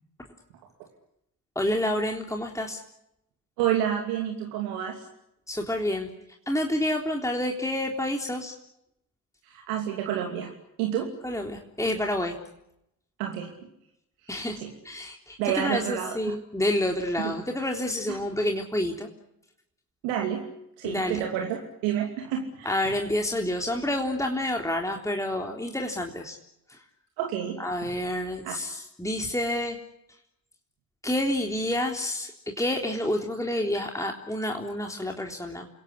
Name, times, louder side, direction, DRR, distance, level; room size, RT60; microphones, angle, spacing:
voice 1, 1.6-2.8 5.5-6.1 6.5-8.5 11.2-12.4 14.3-14.6 14.8-19.1 20.8-21.2 22.7-26.4 27.6-29.8 31.0-32.3 32.6-35.7, left 1 dB, 5° left, 2 dB, 3.6 m, -28 dB
voice 2, 3.6-5.0 9.4-10.5 10.8-11.1 13.2-13.5 14.6-14.7 15.4-16.2 17.2-17.3 18.1-18.2 20.0-20.4 20.8-21.6 21.8-22.8 27.2-27.9 28.4-28.5, right 10 dB, 80° right, 1 dB, 2.9 m, -29 dB
29.0 x 17.0 x 9.9 m, 0.81 s
hypercardioid pair, 45°, 43 cm